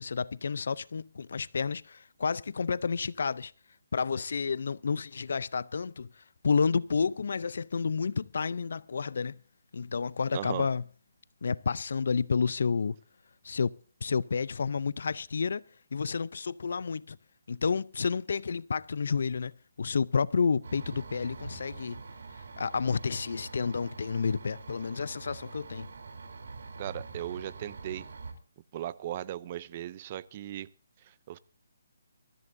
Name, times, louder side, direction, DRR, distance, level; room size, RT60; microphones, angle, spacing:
voice 1, 0.0-3.5 3.9-6.1 6.4-9.4 9.7-10.8 11.4-13.0 13.4-13.7 14.0-15.6 15.9-17.2 17.5-19.5 19.8-22.0 22.6-25.9, left 5 dB, 65° left, 0.5 m, -30 dB
voice 2, 10.3-10.7 26.8-28.1 28.7-30.7 31.1-31.4, right 12 dB, 35° right, 0.6 m, -37 dB
sound 1, 20.6-28.3, right 4 dB, 70° right, 3.6 m, -44 dB
22.5 x 14.0 x 2.7 m
hypercardioid pair, 160°, 0 cm